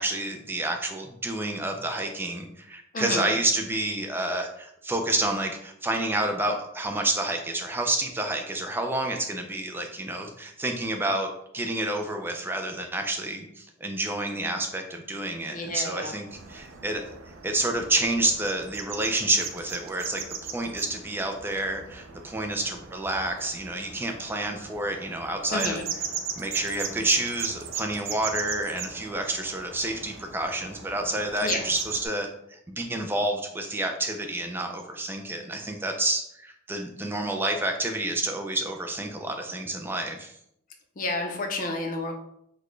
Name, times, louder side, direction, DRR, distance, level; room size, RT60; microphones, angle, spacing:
voice 1, 0.0-17.0 17.4-25.8 26.4-40.3, right 2 dB, 10° right, 4 dB, 0.3 m, -29 dB
voice 2, 2.9-3.3 15.5-16.1 25.5-25.8 31.4-31.7 41.0-42.1, left 2 dB, 40° left, 3 dB, 0.5 m, -30 dB
sound 1, 16.3-32.1, right 6 dB, 75° right, 0.5 m, -38 dB
4.0 x 2.2 x 3.1 m, 0.75 s
head